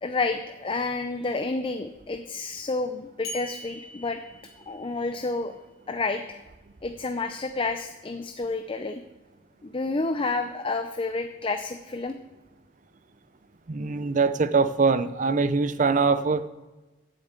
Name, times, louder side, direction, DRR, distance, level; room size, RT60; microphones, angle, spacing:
voice 1, 0.0-4.2 4.7-5.5 5.9-6.4 6.8-9.0 9.6-12.2, left 3 dB, 30° left, 7 dB, 0.5 m, -30 dB
sound 1, 3.2-5.3, left 2 dB, 55° left, 2.3 m, -42 dB
voice 2, 13.7-16.5, right 4 dB, 45° right, 13 dB, 0.5 m, -23 dB
8.0 x 6.6 x 8.2 m, 1.1 s
head